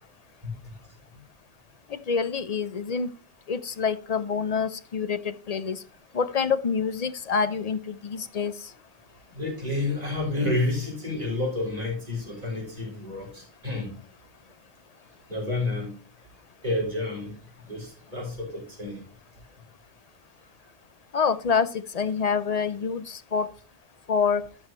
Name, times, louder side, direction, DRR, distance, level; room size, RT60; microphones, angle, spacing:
voice 1, 1.9-3.1 3.5-5.8 6.1-8.7 21.1-23.5 24.1-24.4, left 6 dB, 55° left, 0.4 m, -27 dB
voice 2, 9.3-14.0 15.3-15.9 16.6-17.3 17.7-19.0, left 2 dB, 30° right, 4.1 m, -30 dB
12.5 x 6.5 x 3.0 m
omnidirectional pair, 1.3 m